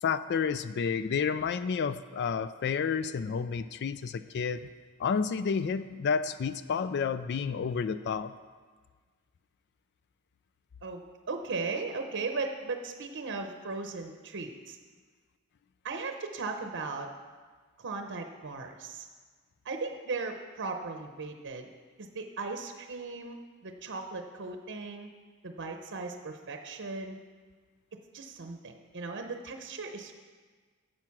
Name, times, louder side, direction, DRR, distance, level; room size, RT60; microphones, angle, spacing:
voice 1, 0.0-4.6 5.0-8.3, left 6 dB, 50° left, 13 dB, 0.3 m, -30 dB
voice 2, 10.8-14.8 15.8-17.1 17.8-19.1 19.6-21.7 22.0-25.1 25.4-27.2 28.1-30.2, right 3 dB, 55° right, 5 dB, 0.8 m, -37 dB
11.0 x 7.7 x 5.9 m, 1.5 s
head